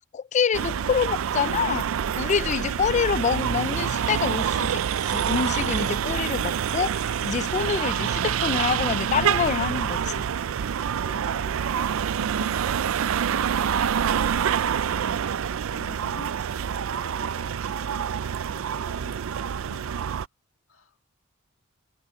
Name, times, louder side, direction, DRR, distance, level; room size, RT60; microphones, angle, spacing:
voice 1, 0.1-1.9 2.2-10.2, left 6 dB, 35° left, 0.3 m, -26 dB
sound 1, 0.5-20.3, right 8 dB, 80° right, 0.4 m, -26 dB
voice 2, 11.0-16.4 16.9-18.1 18.5-19.9 20.7-21.0, left 3 dB, 90° left, 1.7 m, -49 dB
head